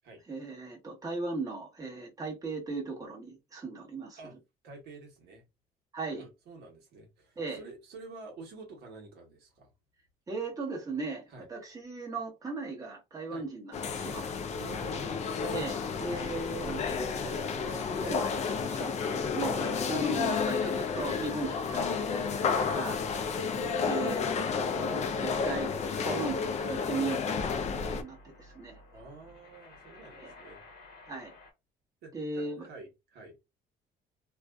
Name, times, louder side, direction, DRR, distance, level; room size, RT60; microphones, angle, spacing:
voice 1, 0.3-4.2 5.9-6.3 7.4-7.6 10.3-14.3 15.5-15.7 16.0-19.6 19.9-23.0 23.3-23.6 23.8-25.7 26.0-27.5 27.8-28.8 30.2-30.3 31.0-31.3 32.1-32.7, right 3 dB, 20° right, 1.0 m, -37 dB
voice 2, 4.6-5.4 6.2-9.7 11.3-11.5 13.3-13.4 14.6-15.5 16.1-16.2 19.6-20.2 23.1-23.3 28.9-30.6 32.0-33.4, right 3 dB, 80° right, 1.1 m, -48 dB
sound 1, 13.7-28.0, left 5 dB, 40° left, 0.4 m, -31 dB
sound 2, 25.3-31.5, left 3 dB, 70° left, 1.1 m, -55 dB
2.5 x 2.3 x 2.2 m
cardioid pair, 110°, 17 cm